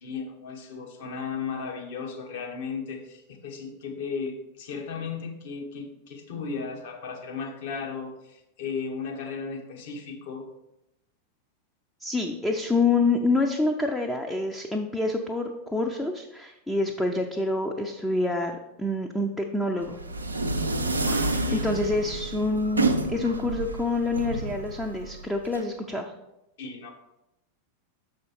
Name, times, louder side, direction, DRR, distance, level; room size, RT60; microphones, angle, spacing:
voice 1, 0.0-10.4 21.1-21.6 26.6-26.9, left 5 dB, 55° left, 2 dB, 1.2 m, -35 dB
voice 2, 12.0-20.0 21.1-26.1, left 3 dB, 5° left, 1 dB, 0.6 m, -27 dB
sound 1, 19.8-25.6, right 2 dB, 80° right, 0.5 m, -29 dB
6.9 x 5.0 x 4.4 m, 0.88 s
figure-of-eight pair, 90°, 0 cm